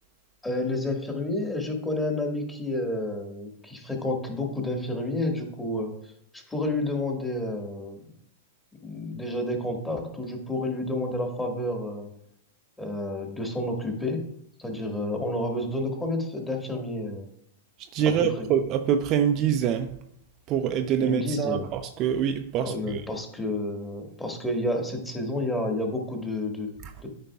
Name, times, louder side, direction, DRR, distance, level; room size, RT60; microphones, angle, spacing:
voice 1, 0.4-5.9 6.3-8.0 8.8-12.1 12.8-14.2 14.6-17.3 18.2-18.3 21.0-21.7 22.6-26.7 27.0-27.1, left 1 dB, 10° left, 1.8 m, -30 dB
voice 2, 17.9-20.0 20.5-23.0 26.8-26.9, right 8 dB, 35° right, 0.5 m, -25 dB
12.5 x 5.5 x 2.4 m
figure-of-eight pair, 100°, 0 cm